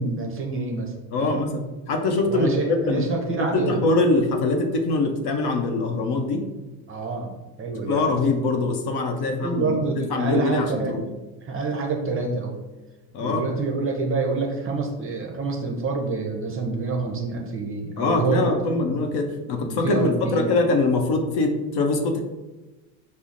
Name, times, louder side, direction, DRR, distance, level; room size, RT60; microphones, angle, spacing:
voice 1, 0.0-1.4 2.3-4.0 6.9-8.2 9.1-11.0 11.4-12.6 13.2-19.0 19.6-20.5, right 3 dB, 30° right, 1 dB, 0.6 m, -27 dB
voice 2, 1.1-3.0 3.4-6.5 7.9-11.0 13.1-13.5 18.0-22.2, left 3 dB, 55° left, 4 dB, 0.7 m, -23 dB
5.5 x 2.1 x 2.5 m, 1.1 s
supercardioid pair, 105°, 46 cm